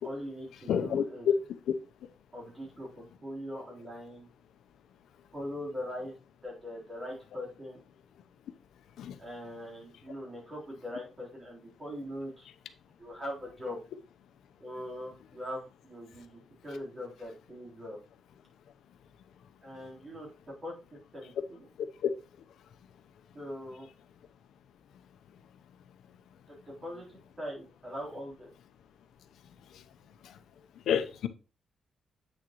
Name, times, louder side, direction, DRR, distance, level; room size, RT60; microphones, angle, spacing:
voice 1, 0.0-1.3 2.3-2.9 3.2-4.3 5.3-6.2 6.4-7.8 9.2-12.5 13.0-13.8 14.6-18.0 19.6-20.3 20.6-20.7 21.1-21.7 23.3-23.9 26.5-28.5, left 1 dB, 25° right, 3.7 m, -41 dB
voice 2, 0.7-1.0 1.7-1.8 9.0-9.1 30.9-31.3, left 8 dB, 85° left, 0.7 m, -28 dB
8.5 x 6.5 x 3.0 m
wide cardioid pair, 170°, 0 cm